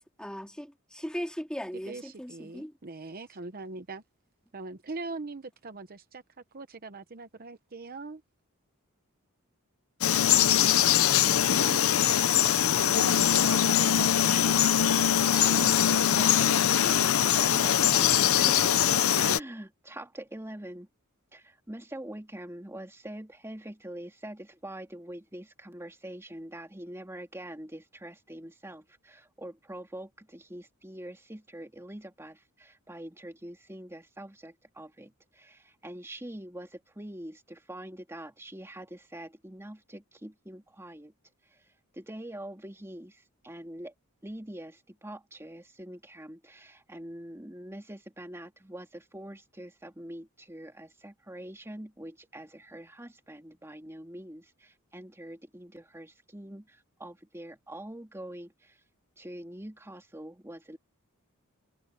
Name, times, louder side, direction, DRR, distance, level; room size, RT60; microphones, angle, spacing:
voice 1, 0.2-2.7, equal, 5° left, 3.1 m, -38 dB
voice 2, 1.9-4.0 4.5-6.2 6.5-8.2, right 3 dB, 40° right, 0.8 m, -41 dB
Frog, 10.0-19.4, left 9 dB, 65° left, 0.7 m, -22 dB
voice 3, 11.2-11.9 12.2-14.6 15.3-18.8 19.1-20.9 21.3-41.1 41.5-41.7 41.9-43.9 44.2-58.8 59.2-60.8, right 1 dB, 10° right, 2.5 m, -44 dB
head